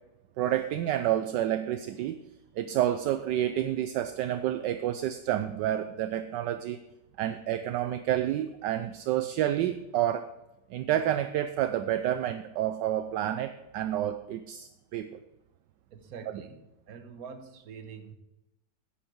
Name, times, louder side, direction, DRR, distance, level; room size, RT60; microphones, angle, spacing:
voice 1, 0.4-2.2 2.6-6.8 7.2-10.3 10.7-15.2, right 12 dB, 75° right, 9 dB, 1.2 m, -29 dB
voice 2, 15.9-18.1, right 6 dB, 55° right, 7 dB, 1.4 m, -45 dB
10.5 x 10.0 x 4.5 m, 0.94 s
omnidirectional pair, 2.0 m